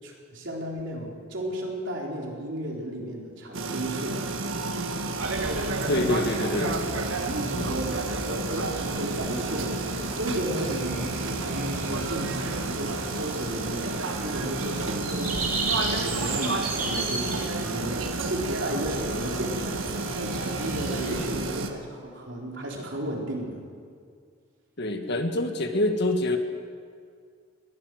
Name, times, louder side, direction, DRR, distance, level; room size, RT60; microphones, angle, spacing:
voice 1, 0.0-4.2 5.3-6.1 6.4-6.7 7.0-19.8 20.1-23.6, right 1 dB, 65° right, -1 dB, 4.1 m, -34 dB
sound 1, 3.5-21.7, right 3 dB, 80° right, 1.6 m, -31 dB
sound 2, 5.2-21.3, right 2 dB, 45° right, 3.9 m, -36 dB
voice 2, 5.9-6.7 7.5-7.7 21.0-21.3 24.8-26.4, left 1 dB, 55° left, 5 dB, 1.8 m, -26 dB
21.0 x 15.5 x 7.8 m, 2.1 s
head